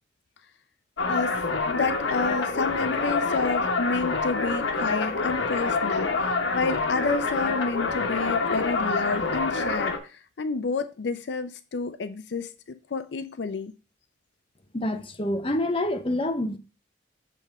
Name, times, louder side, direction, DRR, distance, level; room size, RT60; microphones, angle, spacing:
sound 1, 1.0-10.0, left 3 dB, 85° left, 1.1 m, -26 dB
voice 1, 1.1-13.7, left 4 dB, 65° left, 0.4 m, -30 dB
voice 2, 14.7-16.6, left 1 dB, 30° left, 0.7 m, -27 dB
7.6 x 3.6 x 6.5 m
head